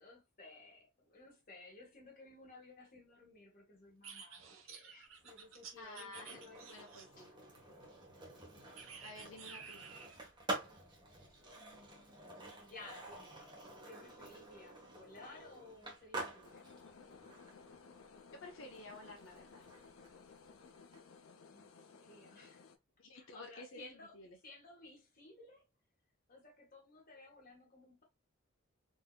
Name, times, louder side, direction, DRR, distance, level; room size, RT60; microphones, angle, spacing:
voice 1, 0.0-6.7 7.2-7.3 11.6-13.5 13.9-16.7 21.5-22.7 23.1-24.2 24.4-25.6 26.3-28.0, left 2 dB, 45° left, 1.7 m, -57 dB
sound 1, 4.0-7.3 8.8-10.2, right 6 dB, 70° right, 0.8 m, -52 dB
Skateboard, 5.1-21.0, right 2 dB, 20° right, 1.1 m, -49 dB
voice 2, 5.8-6.4 6.7-7.3 9.0-9.8 18.4-19.7 23.0-23.9 24.1-24.4, left 2 dB, 70° left, 1.0 m, -52 dB
sound 2, 16.4-22.8, left 5 dB, 85° left, 0.6 m, -58 dB
3.8 x 2.8 x 2.3 m
head